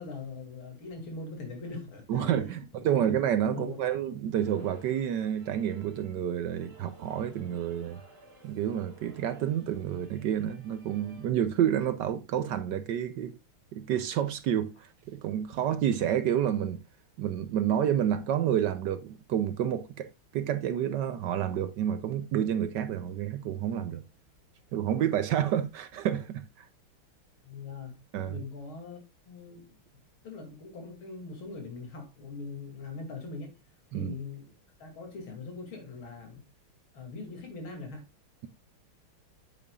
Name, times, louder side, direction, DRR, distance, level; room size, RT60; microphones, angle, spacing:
voice 1, 0.0-3.1 3.5-3.8 27.4-28.0 28.3-29.0 29.3-29.8 30.2-33.5 33.9-34.5 34.8-36.4 36.9-38.1, left 3 dB, 70° left, 3.3 m, -41 dB
voice 2, 2.1-8.0 8.4-13.3 13.7-16.8 17.2-24.0 24.7-26.7 28.1-28.4 33.9-34.1, right 10 dB, 70° right, 1.1 m, -29 dB
sound 1, 4.3-11.3, right 2 dB, 35° right, 3.0 m, -56 dB
8.6 x 8.5 x 2.4 m
omnidirectional pair, 2.4 m